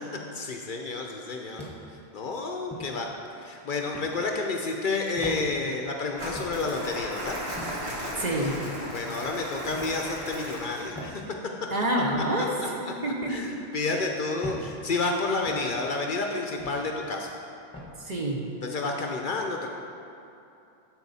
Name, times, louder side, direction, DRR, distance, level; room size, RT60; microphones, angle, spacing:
voice 1, 0.3-1.7 2.1-3.1 3.4-7.4 8.9-11.2 12.4-12.7 13.0-17.3 18.6-19.7, left 3 dB, 55° left, 2 dB, 0.7 m, -30 dB
sound 1, 1.6-2.0 2.7-3.0 3.9-4.2 5.2-5.4 6.4-6.6 7.6-7.8 8.7-8.9 9.7-10.0 10.9-11.2 12.1-12.3 13.2-13.4 14.4-14.7 15.5-15.7 16.6-16.9 17.7-17.9, left 1 dB, 5° left, 1.0 m, -40 dB
Crumpling crinkling, 6.2-11.0, equal, 90° right, 2.3 m, -36 dB
voice 2, 8.2-8.6 11.7-13.3 18.0-18.4, right 1 dB, 45° right, -1 dB, 1.0 m, -27 dB
12.0 x 4.3 x 4.1 m, 2.7 s
omnidirectional pair, 1.1 m